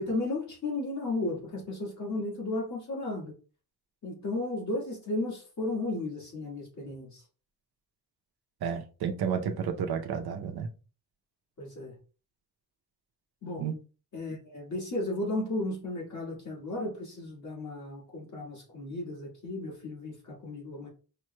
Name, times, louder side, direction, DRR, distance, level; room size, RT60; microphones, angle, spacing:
voice 1, 0.0-3.3 4.0-7.2 11.6-11.9 13.4-13.7 14.1-20.9, left 2 dB, 50° left, 1.6 m, -34 dB
voice 2, 8.6-10.7 13.6-13.7, right 7 dB, 80° right, 0.7 m, -31 dB
4.9 x 3.0 x 2.2 m
wide cardioid pair, 180°, 37 cm